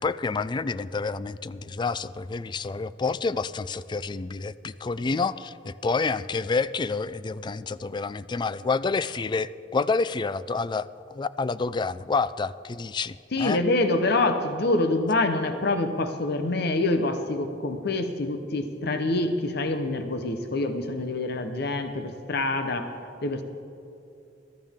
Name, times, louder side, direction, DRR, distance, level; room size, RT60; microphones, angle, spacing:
voice 1, 0.0-13.6, left 4 dB, 25° left, 16 dB, 0.3 m, -28 dB
voice 2, 13.3-22.9 23.2-23.4, left 2 dB, 60° left, 7 dB, 0.9 m, -26 dB
21.5 x 13.0 x 3.6 m, 2.6 s
head